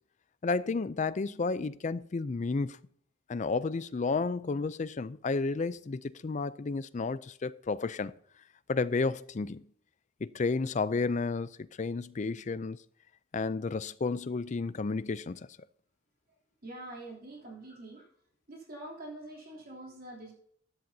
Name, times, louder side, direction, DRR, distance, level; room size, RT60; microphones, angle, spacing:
voice 1, 0.4-2.8 3.3-8.1 8.7-9.6 10.2-12.8 13.3-15.5, left 4 dB, 35° left, 0.4 m, -32 dB
voice 2, 16.6-18.1 18.5-20.3, right 1 dB, 50° right, 3.1 m, -45 dB
14.0 x 10.5 x 2.8 m
head